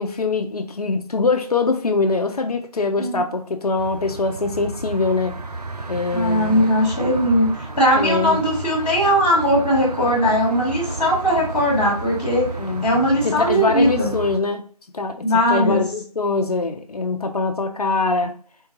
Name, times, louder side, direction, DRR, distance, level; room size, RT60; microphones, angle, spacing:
voice 1, 0.0-5.4 5.9-6.7 7.9-8.4 12.6-12.9 13.2-14.7 14.9-18.4, left 3 dB, 70° left, 0.5 m, -23 dB
sound 1, 3.8-14.4, right 2 dB, 75° right, 0.6 m, -32 dB
voice 2, 6.1-12.4 12.8-14.1 15.2-15.8, equal, 5° left, 1.2 m, -19 dB
3.7 x 2.3 x 2.9 m
figure-of-eight pair, 175°, 20 cm